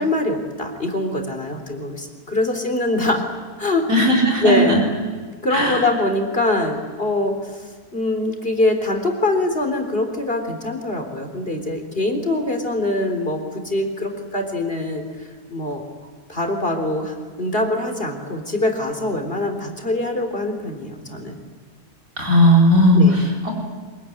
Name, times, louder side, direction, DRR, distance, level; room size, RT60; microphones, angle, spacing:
voice 1, 0.0-3.2 3.6-4.8 5.4-15.0 15.5-15.8 16.3-21.4 22.9-23.2, left 2 dB, 40° left, 4 dB, 3.9 m, -23 dB
voice 2, 3.9-4.8 5.5-5.9 22.2-23.5, equal, 60° right, -2 dB, 5.3 m, -16 dB
25.0 x 22.0 x 9.9 m, 1.5 s
omnidirectional pair, 1.6 m